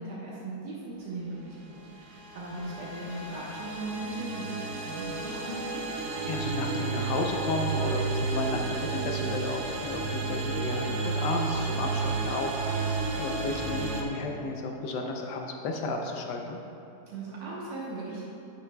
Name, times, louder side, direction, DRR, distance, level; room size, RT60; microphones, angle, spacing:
voice 1, 0.0-5.8 17.1-18.2, right 2 dB, 80° right, -7 dB, 1.7 m, -38 dB
sound 1, 1.8-14.0, right 3 dB, 55° right, 1.0 m, -32 dB
voice 2, 6.2-16.6, left 2 dB, 90° left, 2 dB, 1.4 m, -33 dB
11.0 x 7.2 x 2.3 m, 2.8 s
omnidirectional pair, 1.8 m